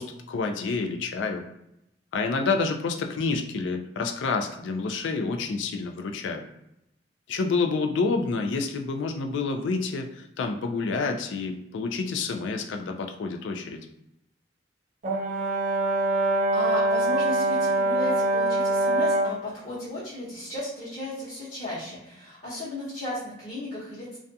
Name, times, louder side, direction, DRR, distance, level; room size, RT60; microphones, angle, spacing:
voice 1, 0.0-1.4 2.1-6.4 7.3-13.8, left 4 dB, 80° left, 5 dB, 0.3 m, -28 dB
Brass instrument, 15.0-19.4, right 2 dB, 40° right, 0.4 m, -24 dB
voice 2, 16.3-24.2, left 1 dB, 35° left, -11 dB, 0.8 m, -35 dB
2.3 x 2.2 x 2.6 m, 0.83 s
head